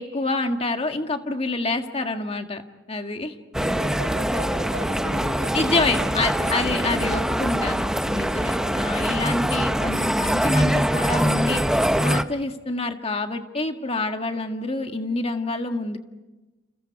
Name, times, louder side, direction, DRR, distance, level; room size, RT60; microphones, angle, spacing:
voice 1, 0.0-2.6 2.9-3.3 5.5-16.0, left 2 dB, 35° left, 5 dB, 1.8 m, -27 dB
sound 1, 3.5-12.2, equal, 5° right, 0.7 m, -23 dB
voice 2, 3.5-6.6 8.5-8.9, right 1 dB, 70° right, -6 dB, 6.8 m, -36 dB
30.0 x 29.0 x 4.8 m, 1.1 s
head